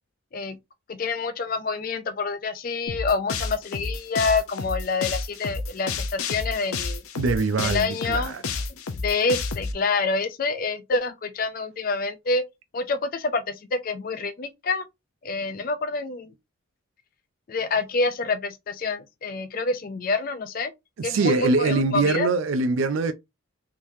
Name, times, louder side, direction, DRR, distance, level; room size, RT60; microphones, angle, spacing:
voice 1, 0.9-7.0 7.6-8.3 9.0-12.4 12.7-14.9 15.2-16.3 17.5-20.7 21.0-22.3, left 3 dB, 40° left, 0.4 m, -27 dB
sound 1, 2.9-9.7, left 4 dB, 90° left, 0.7 m, -30 dB
voice 2, 7.2-8.4 21.0-23.1, right 3 dB, 70° right, 0.4 m, -23 dB
3.6 x 3.0 x 2.6 m
head